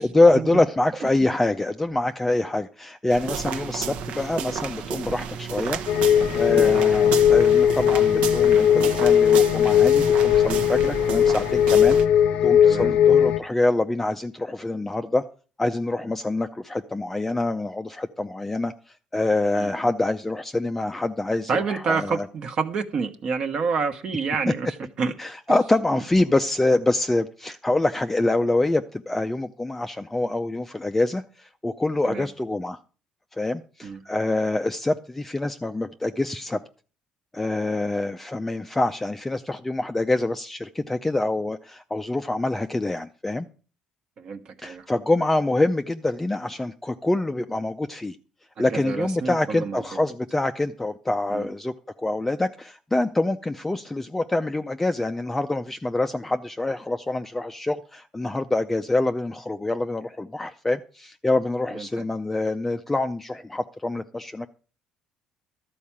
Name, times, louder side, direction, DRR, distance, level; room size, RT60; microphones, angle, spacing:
voice 1, 0.0-5.8 6.3-12.0 12.4-15.2 15.6-18.7 19.1-22.3 24.5-24.6 25.2-32.8 33.3-36.6 37.3-43.5 44.6-48.2 48.6-51.7 52.0-64.5, left 2 dB, 10° left, 0.5 m, -25 dB
sound 1, 3.1-12.1, right 7 dB, 70° right, 0.9 m, -32 dB
sound 2, 5.9-13.4, left 9 dB, 70° left, 0.7 m, -18 dB
voice 2, 12.6-12.9 19.6-19.7 21.5-24.7 25.0-25.1 32.0-32.3 33.8-34.0 44.2-44.8 48.6-50.1 51.3-51.5 61.7-61.9, right 5 dB, 45° right, 1.2 m, -28 dB
12.5 x 4.6 x 8.6 m
cardioid pair, 130°, 2 cm